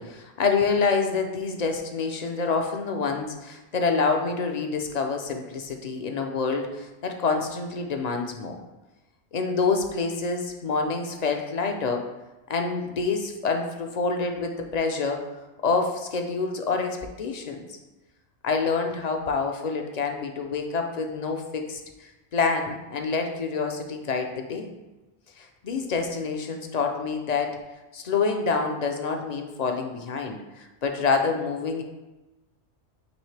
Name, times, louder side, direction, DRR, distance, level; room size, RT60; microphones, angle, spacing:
voice 1, 0.0-8.6 9.3-12.0 12.5-15.2 15.6-17.8 18.4-24.7 25.4-27.5 27.9-31.8, left 4 dB, 45° left, 4 dB, 0.6 m, -27 dB
9.2 x 3.1 x 3.3 m, 1.1 s
omnidirectional pair, 1.2 m